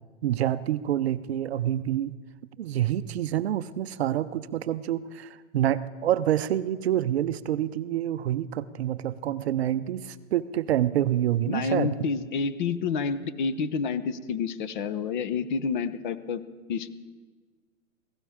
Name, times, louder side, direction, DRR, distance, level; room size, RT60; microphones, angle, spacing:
voice 1, 0.2-2.2 2.6-11.9, right 11 dB, 50° right, 14 dB, 0.6 m, -27 dB
voice 2, 11.5-16.4 16.7-16.9, left 5 dB, 35° left, 13 dB, 0.7 m, -29 dB
16.5 x 15.0 x 4.9 m, 1.4 s
hypercardioid pair, 145°, 42 cm